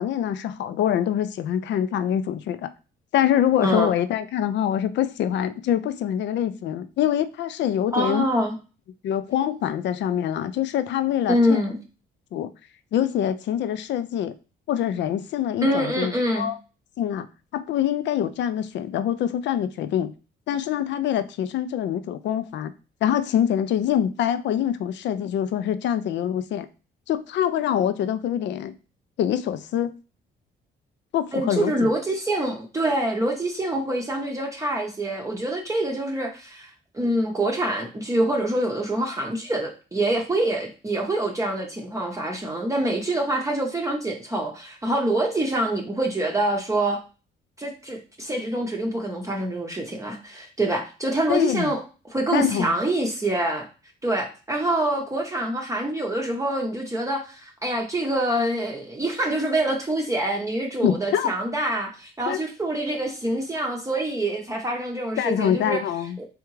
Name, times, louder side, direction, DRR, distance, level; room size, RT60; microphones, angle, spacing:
voice 1, 0.0-2.7 3.1-8.3 9.0-11.6 12.3-12.5 12.9-14.3 14.7-16.6 17.0-17.3 17.5-20.1 20.5-22.7 23.0-26.7 27.1-28.7 29.2-29.9 31.1-31.9 51.3-51.7 52.3-52.8 60.8-61.3 62.3-62.4 65.2-66.2, left 10 dB, 65° left, 0.4 m, -24 dB
voice 2, 7.9-8.6 11.3-11.8 15.6-16.5 31.3-47.0 47.6-51.8 52.1-53.7 54.0-65.8 66.2-66.3, right 1 dB, 15° right, 0.7 m, -25 dB
3.5 x 3.4 x 3.1 m
cardioid pair, 90°, 20 cm